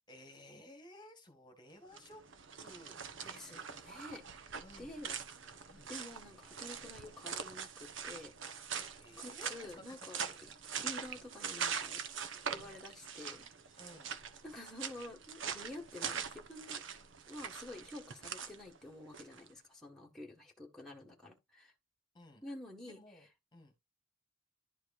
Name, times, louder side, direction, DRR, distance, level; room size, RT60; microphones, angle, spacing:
voice 1, 0.1-2.2 2.6-3.0 4.6-4.9 5.7-5.9 8.8-10.5 12.6-12.8 13.8-14.1 22.1-22.4 22.8-23.3 23.5-23.7, left 1 dB, 20° left, 1.6 m, -56 dB
sound 1, 1.8-19.5, right 7 dB, 60° right, 1.0 m, -43 dB
voice 2, 3.2-5.2 5.9-8.7 9.2-10.2 10.8-12.0 12.4-13.5 14.4-16.8 17.3-21.7 22.4-23.2, left 1 dB, ahead, 1.6 m, -49 dB
11.5 x 4.7 x 2.5 m
head